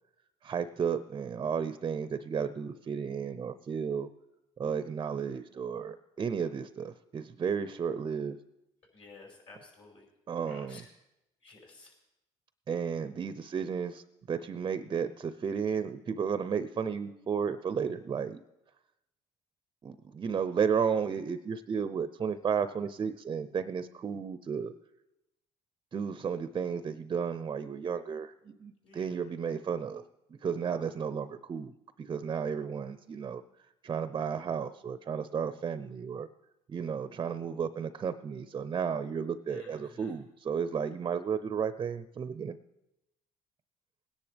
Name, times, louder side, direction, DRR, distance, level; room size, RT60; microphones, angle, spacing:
voice 1, 0.4-4.1 4.6-8.4 10.3-10.9 12.7-14.0 14.3-18.4 19.8-24.7 25.9-30.0 30.4-31.7 32.0-33.4 33.8-36.3 36.7-42.6, right 6 dB, 35° right, 12 dB, 0.6 m, -33 dB
voice 2, 8.9-10.0 10.5-10.8 11.4-11.9 28.8-29.1 39.5-40.1, left 3 dB, 45° left, -1 dB, 5.2 m, -52 dB
20.0 x 10.0 x 3.4 m, 0.92 s
cardioid pair, 90°, 12 cm